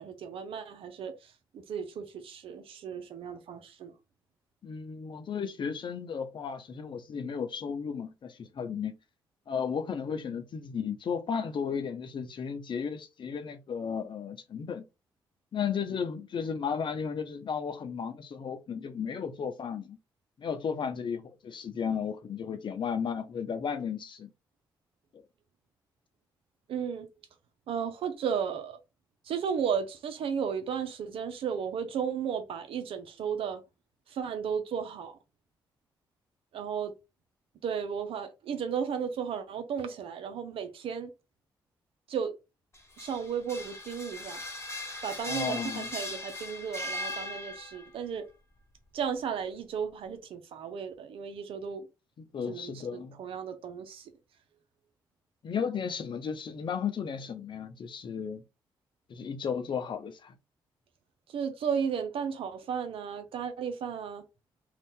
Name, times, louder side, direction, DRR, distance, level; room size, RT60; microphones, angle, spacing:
voice 1, 0.0-3.9 26.7-27.1 27.7-28.8 29.2-33.6 34.1-35.2 36.5-36.9 37.6-41.1 42.1-42.3 43.0-44.6 45.0-48.3 48.9-51.9 52.5-54.1 61.3-64.2, right 7 dB, 75° right, 0.7 m, -34 dB
voice 2, 4.6-9.0 9.5-14.8 15.5-20.0 20.4-24.3 25.1-25.2 45.3-45.9 52.3-53.2 55.4-58.4 59.1-60.4, left 6 dB, 60° left, 0.7 m, -34 dB
sound 1, 42.7-47.9, left 1 dB, 30° left, 0.9 m, -38 dB
2.7 x 2.5 x 3.5 m
supercardioid pair, 55°, 9 cm